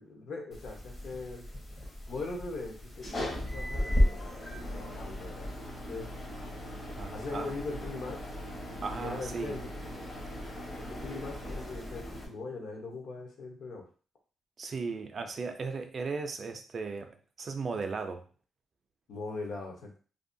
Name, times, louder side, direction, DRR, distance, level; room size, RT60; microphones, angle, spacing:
voice 1, 0.0-1.4 2.1-5.5 5.9-6.1 7.1-8.2 8.7-10.0 10.7-13.8 19.1-20.0, left 3 dB, 65° left, 1 dB, 0.7 m, -40 dB
sound 1, 0.5-12.3, left 1 dB, 30° left, 0.7 m, -35 dB
voice 2, 7.0-7.5 8.8-9.5 14.6-18.2, right 4 dB, 40° right, 6 dB, 0.3 m, -36 dB
2.7 x 2.1 x 2.6 m, 0.37 s
cardioid pair, 150°, 0 cm